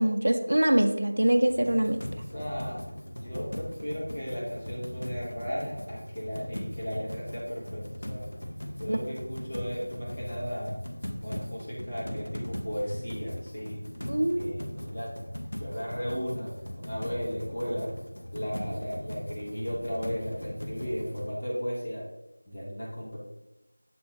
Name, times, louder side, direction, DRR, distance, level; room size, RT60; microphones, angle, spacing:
voice 1, 0.0-2.0 8.9-9.0 14.1-14.5, right 1 dB, 65° right, 6 dB, 0.6 m, -24 dB
sound 1, 1.5-21.3, equal, 90° left, 0.9 m, -39 dB
voice 2, 2.3-2.8 3.1-8.3 8.8-10.8 11.2-13.8 14.3-15.1 15.6-17.9 18.3-22.0 22.4-23.2, equal, 25° left, -7 dB, 1.2 m, -35 dB
7.5 x 3.2 x 4.0 m, 0.88 s
figure-of-eight pair, 175°, 0 cm